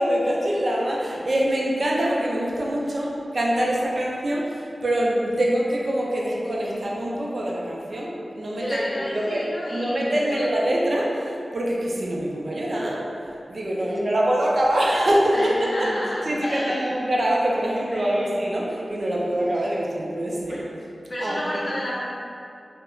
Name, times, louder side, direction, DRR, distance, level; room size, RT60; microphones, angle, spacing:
voice 1, 0.0-15.9 16.3-20.6 21.2-21.4, right 1 dB, 55° right, -3 dB, 0.4 m, -24 dB
voice 2, 8.6-10.5 13.9-14.0 15.3-16.9 17.9-18.4 20.5-20.7 21.1-22.0, equal, 45° left, -6 dB, 0.5 m, -32 dB
3.0 x 2.0 x 2.3 m, 2.5 s
wide cardioid pair, 90°, 0 cm